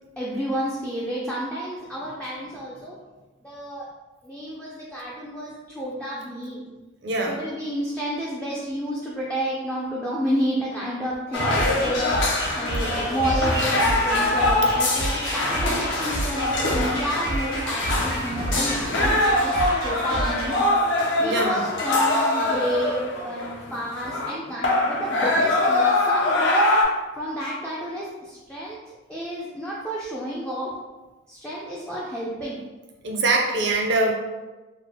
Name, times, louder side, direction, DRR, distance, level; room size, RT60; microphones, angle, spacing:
voice 1, 0.2-3.0 3.4-3.9 4.2-6.6 7.3-12.0 12.5-20.6 21.2-26.7 27.1-28.8 29.1-30.7 31.3-32.6, equal, 5° left, -6 dB, 0.3 m, -30 dB
voice 2, 7.0-7.4 21.2-21.6 33.0-34.1, right 2 dB, 55° right, 1 dB, 0.5 m, -23 dB
sound 1, 11.3-24.3 24.6-26.8, left 2 dB, 60° left, 0.5 m, -23 dB
sound 2, 11.5-20.6, right 1 dB, 80° left, 1.3 m, -30 dB
3.3 x 2.0 x 3.4 m, 1.2 s
head